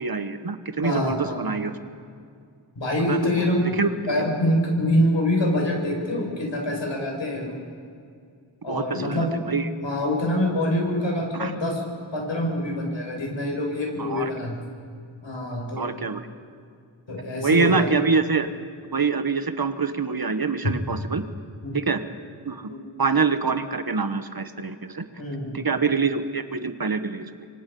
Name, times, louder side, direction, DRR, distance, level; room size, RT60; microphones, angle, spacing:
voice 1, 0.0-1.7 3.1-3.3 3.8-3.9 8.7-9.7 11.3-11.5 14.0-14.3 15.7-16.2 17.4-18.5 18.9-21.2 21.7-22.0 22.4-22.7 23.0-25.0 25.5-27.5, right 5 dB, 50° right, 10 dB, 1.3 m, -25 dB
voice 2, 0.8-1.4 2.8-3.6 4.1-7.6 8.6-9.3 9.8-11.9 12.1-14.5 15.2-15.9 17.1-17.9 21.6-21.7 22.7-22.8 25.2-25.6, left 1 dB, 75° left, 0 dB, 6.1 m, -25 dB
27.0 x 25.0 x 5.5 m, 2.3 s
wide cardioid pair, 60°, 45 cm